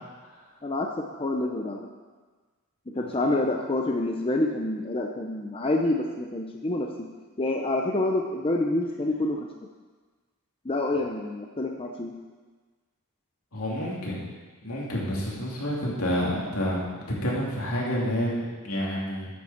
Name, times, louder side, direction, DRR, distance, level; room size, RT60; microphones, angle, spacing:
voice 1, 1.2-1.9 2.9-6.9 7.4-9.4 10.7-12.1, left 2 dB, 25° left, 1 dB, 0.6 m, -27 dB
voice 2, 13.5-14.2 14.6-19.3, equal, 80° left, -4 dB, 2.9 m, -29 dB
9.3 x 6.9 x 7.2 m, 1.4 s
head